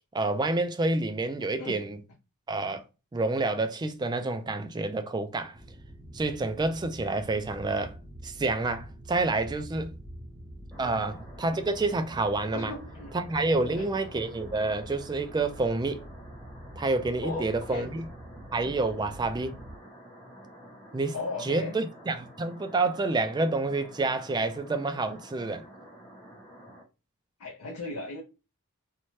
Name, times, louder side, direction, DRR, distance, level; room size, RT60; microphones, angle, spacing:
voice 1, 0.1-2.0 2.5-2.8 3.1-5.6 6.1-8.0 8.2-9.9 10.8-12.7 13.1-16.0 16.8-18.1 18.5-19.6 20.9-21.1 21.4-25.6, right 3 dB, 20° right, 0.3 m, -28 dB
sound 1, 5.5-19.8, equal, 55° right, 0.9 m, -46 dB
sound 2, 10.7-26.8, right 1 dB, 10° left, 0.9 m, -50 dB
voice 2, 10.8-11.1 12.5-13.1 13.5-13.9 17.2-17.9 21.1-21.8 27.4-28.2, left 3 dB, 70° left, 0.6 m, -37 dB
2.6 x 2.2 x 3.1 m
head